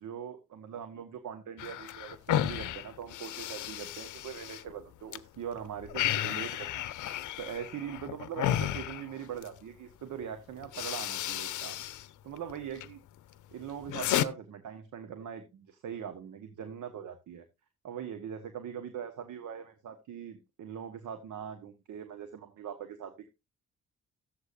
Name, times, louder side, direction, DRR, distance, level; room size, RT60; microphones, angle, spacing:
voice 1, 0.0-6.9 7.4-11.8 12.2-13.0 13.5-17.4 17.8-23.3, right 8 dB, 60° right, 8 dB, 1.3 m, -41 dB
sound 1, 1.6-5.2 5.5-9.6 10.2-10.3 10.6-12.1 12.4-12.9 13.3-14.3, left 12 dB, 60° left, 0.7 m, -33 dB
13.0 x 8.0 x 2.5 m, 0.25 s
hypercardioid pair, 45°, 34 cm